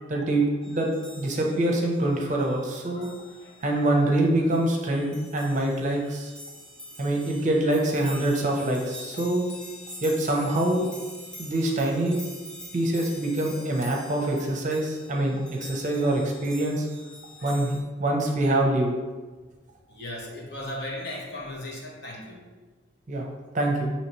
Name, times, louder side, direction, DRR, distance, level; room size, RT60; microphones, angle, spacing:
voice 1, 0.1-3.1 3.6-6.3 7.0-9.4 10.0-10.9 11.4-12.2 12.7-16.9 17.4-18.9 23.1-23.3 23.5-23.9, right 1 dB, 40° right, 0 dB, 0.6 m, -25 dB
sound 1, 0.6-17.8, left 1 dB, 5° left, 0.5 m, -45 dB
voice 2, 19.9-22.4, left 1 dB, 60° left, -2 dB, 0.9 m, -37 dB
5.6 x 2.9 x 3.0 m, 1.3 s
head